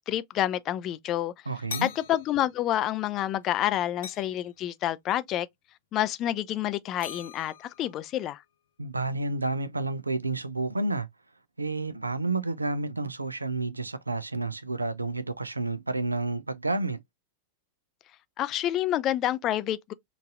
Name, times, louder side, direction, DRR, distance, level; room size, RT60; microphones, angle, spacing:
voice 1, 0.1-1.3 1.8-5.5 5.9-8.4 18.4-19.9, left 12 dB, 35° left, 0.3 m, -28 dB
voice 2, 1.5-1.9 8.8-11.1 11.6-17.0, right 2 dB, 80° right, 0.4 m, -30 dB
sound 1, 1.7-2.9 3.2-3.5 4.0-4.5 6.3-6.5 7.0-8.2, left 6 dB, 65° left, 0.7 m, -43 dB
3.9 x 2.4 x 2.3 m
figure-of-eight pair, 90°, 0 cm